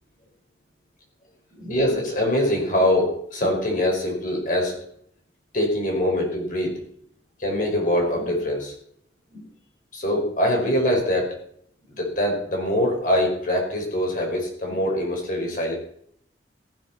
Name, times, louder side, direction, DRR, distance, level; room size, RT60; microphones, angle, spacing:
voice 1, 1.5-4.8 5.5-6.7 7.4-8.7 9.3-9.4 9.9-11.3 11.9-15.7, left 1 dB, 50° left, 0 dB, 5.0 m, -23 dB
15.5 x 9.6 x 5.8 m, 0.67 s
head